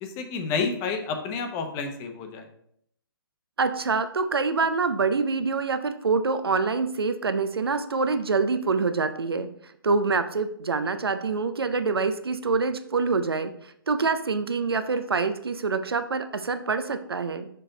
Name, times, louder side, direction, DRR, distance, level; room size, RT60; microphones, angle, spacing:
voice 1, 0.0-2.5, left 5 dB, 25° left, 6 dB, 0.8 m, -30 dB
voice 2, 3.6-9.5 9.8-17.5, right 4 dB, 85° right, 10 dB, 0.5 m, -26 dB
6.2 x 4.6 x 3.8 m, 0.70 s
figure-of-eight pair, 135°, 12 cm